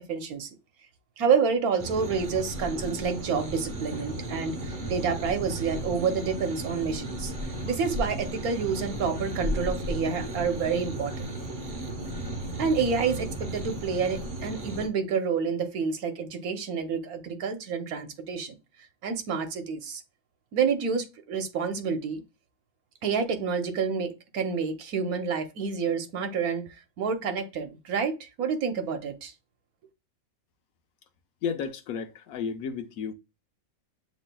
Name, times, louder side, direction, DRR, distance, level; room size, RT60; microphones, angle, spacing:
voice 1, 0.1-0.5 1.2-7.3 7.6-11.1 12.6-18.6 19.0-20.0 20.5-22.2 23.0-26.6 27.0-29.3, right 5 dB, 75° right, 1.3 m, -28 dB
sound 1, 1.8-14.9, right 1 dB, 40° right, 0.9 m, -34 dB
voice 2, 31.4-33.1, left 6 dB, 80° left, 1.1 m, -32 dB
7.2 x 3.2 x 2.2 m
omnidirectional pair, 1.5 m